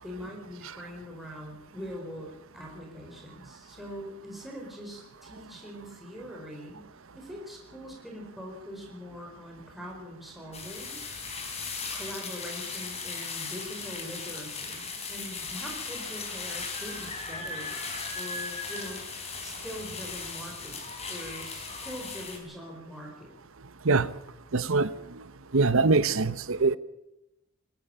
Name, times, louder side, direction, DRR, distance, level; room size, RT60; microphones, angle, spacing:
voice 1, 0.0-6.9 7.1-11.0 11.9-17.7 18.1-19.0 19.4-20.8 21.1-23.3, equal, ahead, 4.6 m, -42 dB
sound 1, 10.5-22.4, left 4 dB, 30° left, 4.4 m, -37 dB
voice 2, 24.5-25.2 25.5-26.8, right 3 dB, 65° right, 1.0 m, -24 dB
20.5 x 14.0 x 8.9 m
head